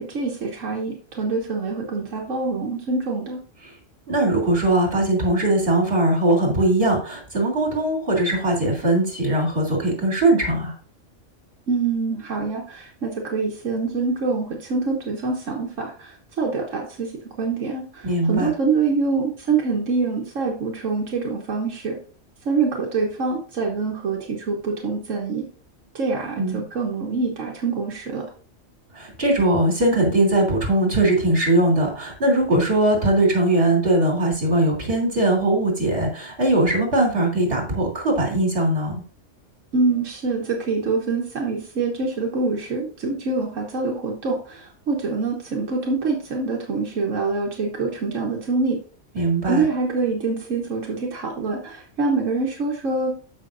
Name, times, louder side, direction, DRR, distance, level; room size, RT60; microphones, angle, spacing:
voice 1, 0.0-3.4 11.7-17.1 17.4-22.0 22.4-25.4 25.9-28.2 39.7-48.8 49.4-53.2, right 4 dB, 85° right, -1 dB, 1.5 m, -25 dB
voice 2, 4.1-10.7 18.0-18.5 26.4-26.6 28.9-39.0 49.2-49.7, right 1 dB, 50° right, 0 dB, 3.5 m, -20 dB
14.0 x 5.7 x 2.6 m, 0.41 s
omnidirectional pair, 1.3 m